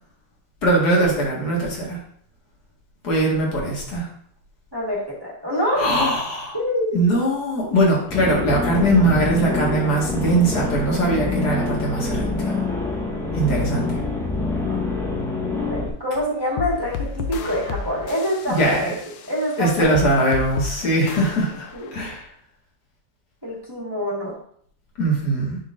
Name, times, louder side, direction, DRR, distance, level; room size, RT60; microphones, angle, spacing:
voice 1, 0.6-2.0 3.0-4.1 5.8-6.6 6.9-12.6 13.3-13.9 18.5-19.0 19.6-22.3 25.0-25.6, right 1 dB, 60° left, -3 dB, 2.3 m, -21 dB
voice 2, 4.7-5.9 6.5-7.0 14.7-14.8 15.7-18.8 19.3-19.9 21.7-21.9 23.4-24.3, equal, 15° right, -5 dB, 1.6 m, -25 dB
sound 1, 8.1-15.9, left 3 dB, ahead, 0.6 m, -25 dB
sound 2, 16.6-22.2, left 6 dB, 85° left, 1.3 m, -33 dB
10.0 x 4.0 x 2.5 m, 0.63 s
omnidirectional pair, 2.0 m